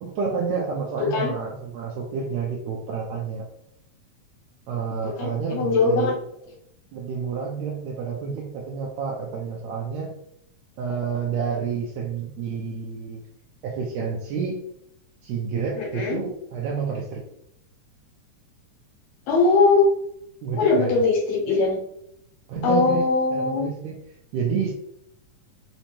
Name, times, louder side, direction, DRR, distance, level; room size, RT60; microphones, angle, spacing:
voice 1, 0.0-3.5 4.7-6.2 6.9-10.1 10.8-13.2 13.6-14.6 15.2-17.2 20.4-21.1 22.5-24.0 24.3-24.7, right 6 dB, 80° right, -2 dB, 1.7 m, -29 dB
voice 2, 1.0-1.3 5.0-6.2 15.8-16.2 19.3-19.9 20.6-21.8 22.6-23.7, left 3 dB, 65° left, -3 dB, 1.9 m, -21 dB
5.2 x 2.0 x 2.9 m, 0.73 s
omnidirectional pair, 3.5 m